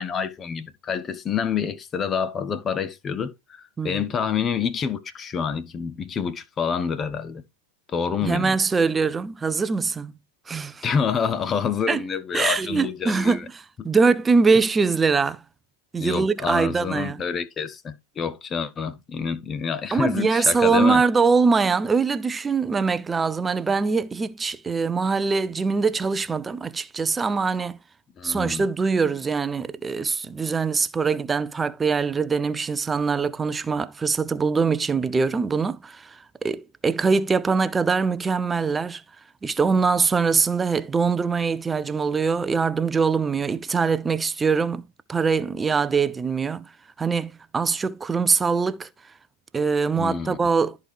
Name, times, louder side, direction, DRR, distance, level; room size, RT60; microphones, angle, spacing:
voice 1, 0.0-7.4 7.9-8.5 10.8-13.4 13.8-13.9 16.0-21.0 28.2-28.7 50.0-50.4, left 6 dB, 25° left, 0.7 m, -27 dB
voice 2, 8.2-10.1 10.5-10.8 11.9-12.0 12.3-15.4 15.9-17.2 19.9-27.8 28.2-39.0 39.4-44.8 45.1-46.7 47.0-48.9 49.5-50.8, right 5 dB, 15° right, 0.5 m, -23 dB
13.0 x 4.7 x 3.4 m
figure-of-eight pair, 90°, 0 cm